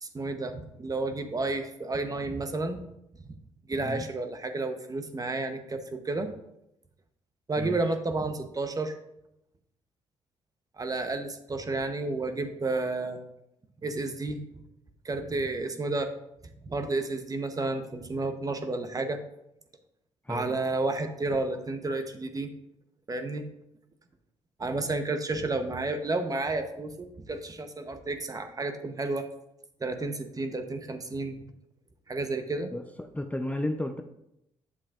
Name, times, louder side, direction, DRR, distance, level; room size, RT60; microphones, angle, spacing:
voice 1, 0.0-2.8 3.2-3.3 3.7-6.3 7.5-8.9 10.8-13.2 13.8-14.4 15.0-16.1 16.6-19.2 20.3-22.5 23.1-23.5 24.6-29.3 29.8-31.4 32.1-32.7, right 2 dB, 30° right, 7 dB, 0.9 m, -31 dB
voice 2, 32.7-34.0, left 1 dB, 10° left, 6 dB, 0.6 m, -33 dB
8.4 x 7.3 x 2.4 m, 0.83 s
supercardioid pair, 60°, 12 cm